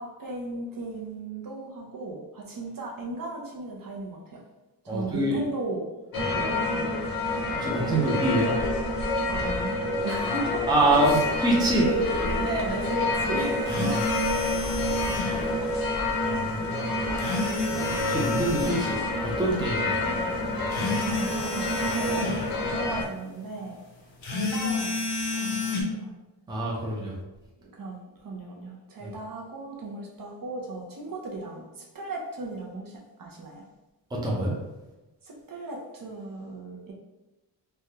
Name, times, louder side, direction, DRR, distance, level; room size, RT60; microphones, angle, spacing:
voice 1, 0.0-4.4 4.8-5.9 6.3-6.9 9.3-10.7 11.0-11.3 11.8-15.7 21.1-22.4 22.7-23.8 24.2-24.9 25.3-26.1 27.6-33.6 35.2-36.9, right 2 dB, 50° right, -1 dB, 0.6 m, -36 dB
voice 2, 4.9-5.4 7.5-8.5 10.7-11.9 13.7-14.0 16.2-16.8 18.0-19.9 20.8-21.0 26.5-27.2 29.0-29.1 34.1-34.6, right 1 dB, 10° right, -4 dB, 0.5 m, -26 dB
sound 1, 6.1-23.0, left 2 dB, 55° left, 0.7 m, -28 dB
sound 2, 13.7-15.4 17.2-18.9 20.7-22.4 24.2-25.8, left 2 dB, 85° left, 0.7 m, -30 dB
3.3 x 2.2 x 2.7 m, 1.0 s
wide cardioid pair, 155°, 44 cm